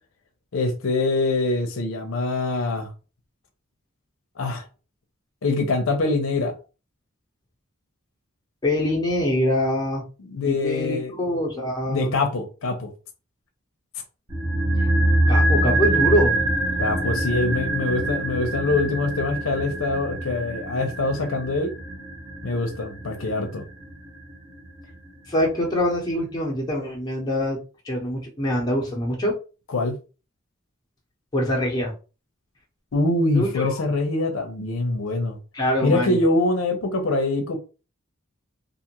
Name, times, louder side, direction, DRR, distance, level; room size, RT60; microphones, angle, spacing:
voice 1, 0.5-2.9 4.4-4.6 5.4-6.5 10.2-11.1 11.9-12.9 16.8-21.7 22.4-23.6 29.7-29.9 32.9-35.4 35.8-37.6, left 2 dB, 75° left, 0.5 m, -24 dB
voice 2, 8.6-10.0 10.5-12.2 14.8-14.9 15.3-16.4 25.3-27.6 27.8-29.3 31.3-31.9 33.3-33.8 35.5-36.2, left 1 dB, 20° left, 0.8 m, -24 dB
sound 1, 14.3-24.5 24.8-24.9, right 1 dB, 20° right, 1.0 m, -24 dB
2.5 x 2.4 x 2.8 m
head